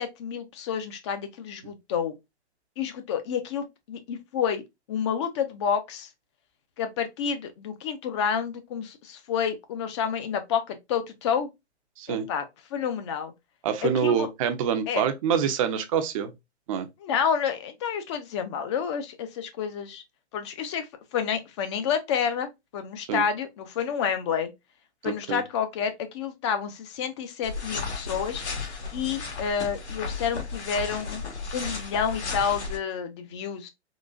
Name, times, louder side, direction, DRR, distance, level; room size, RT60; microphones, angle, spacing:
voice 1, 0.0-2.1 2.8-4.6 4.9-6.1 6.8-11.5 12.1-12.4 12.7-13.3 13.8-14.3 14.9-15.1 17.0-20.0 20.3-22.5 22.7-24.5 25.0-28.4 28.9-31.2 31.5-33.7, left 7 dB, 25° left, 0.5 m, -29 dB
voice 2, 13.6-16.3 16.7-16.9 23.1-23.2 25.0-25.4, right 8 dB, 30° right, 0.5 m, -26 dB
sound 1, 27.4-32.8, left 4 dB, 75° left, 1.3 m, -34 dB
3.8 x 2.4 x 2.3 m
hypercardioid pair, 130°, 34 cm